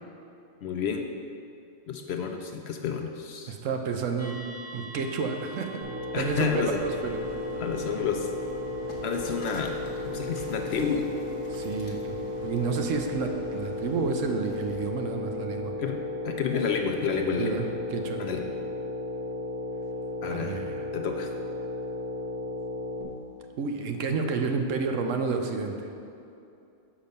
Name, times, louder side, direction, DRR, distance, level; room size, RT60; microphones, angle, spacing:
voice 1, 0.6-1.1 1.9-3.6 6.1-6.8 7.6-8.3 9.0-9.7 10.0-11.1 15.8-16.0 16.2-17.6 18.2-18.4 20.2-20.7 20.9-21.3, left 6 dB, 65° left, 3 dB, 0.7 m, -30 dB
voice 2, 3.5-4.4 4.7-5.8 6.2-7.2 11.5-15.7 17.4-18.2 20.3-20.8 23.6-25.9, right 4 dB, 75° right, 4 dB, 1.0 m, -30 dB
sound 1, 4.2-12.9, right 2 dB, 15° right, 0.7 m, -48 dB
sound 2, 5.8-23.0, left 2 dB, 50° right, 1.7 m, -34 dB
sound 3, 6.1-14.9, left 2 dB, 85° left, 1.3 m, -46 dB
6.9 x 5.2 x 5.2 m, 2.7 s
omnidirectional pair, 1.4 m